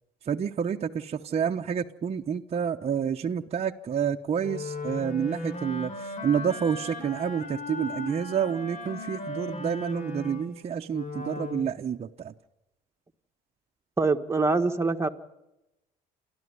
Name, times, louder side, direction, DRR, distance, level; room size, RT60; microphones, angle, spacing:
voice 1, 0.3-12.3, right 7 dB, 40° right, 3 dB, 0.9 m, -29 dB
Wind instrument woodwind instrument, 4.4-11.8, left 2 dB, 50° left, 3.4 m, -37 dB
voice 2, 14.0-15.1, right 3 dB, 15° right, 5 dB, 1.5 m, -24 dB
29.5 x 12.5 x 9.6 m, 0.93 s
cardioid pair, 110°, 17 cm